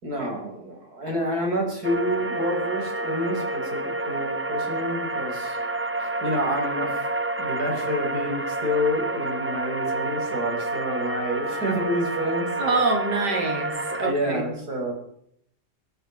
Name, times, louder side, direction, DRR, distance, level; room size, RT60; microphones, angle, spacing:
voice 1, 0.0-5.6 6.0-7.1 7.4-12.8 14.0-14.9, equal, 65° right, 1 dB, 6.0 m, -28 dB
sound 1, 1.8-14.1, right 2 dB, 10° right, 0.6 m, -29 dB
voice 2, 12.6-14.5, right 3 dB, 90° right, 3 dB, 3.7 m, -26 dB
23.0 x 13.0 x 4.7 m, 0.68 s
omnidirectional pair, 1.8 m